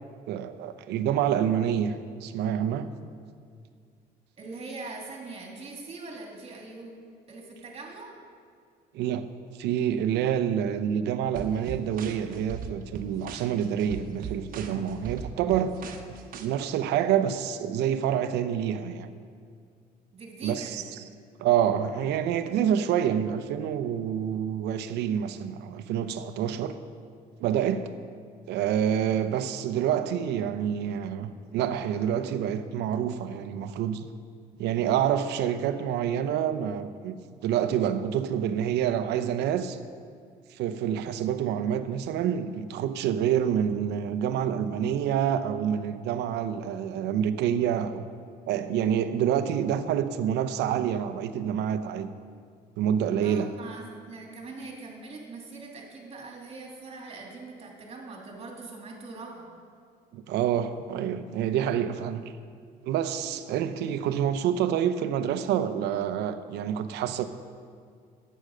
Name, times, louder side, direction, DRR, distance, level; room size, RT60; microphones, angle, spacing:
voice 1, 0.3-1.9 2.2-2.9 8.9-9.3 9.6-15.8 16.4-19.1 20.4-20.8 21.4-26.8 27.4-27.9 28.5-34.1 34.6-39.8 40.5-48.0 48.5-52.1 52.8-53.5 60.1-62.3 62.8-67.3, right 9 dB, 80° right, 0.7 m, -27 dB
voice 2, 4.4-6.9 7.3-8.1 20.1-20.9 53.2-59.5, right 3 dB, 35° right, 2.6 m, -42 dB
sound 1, 11.3-16.4, right 7 dB, 55° right, 1.2 m, -39 dB
11.5 x 8.8 x 6.5 m
cardioid pair, 110°, 17 cm